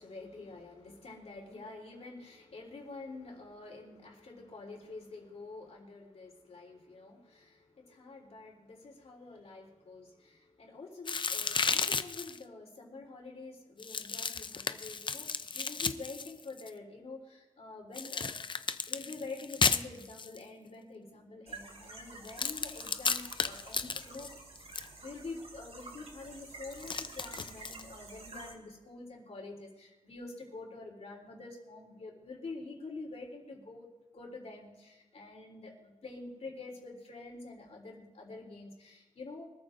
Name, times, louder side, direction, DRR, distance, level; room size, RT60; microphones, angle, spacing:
voice 1, 0.0-18.3 18.9-24.3 25.0-39.5, left 3 dB, 60° left, -1 dB, 3.5 m, -47 dB
sound 1, 11.1-12.4 13.8-16.7 17.9-20.4 22.2-24.9 26.7-27.8, left 5 dB, 40° left, 0.5 m, -34 dB
sound 2, 21.5-28.5, right 3 dB, 55° right, 2.6 m, -50 dB
24.0 x 13.5 x 2.6 m, 1.1 s
wide cardioid pair, 125°, 13 cm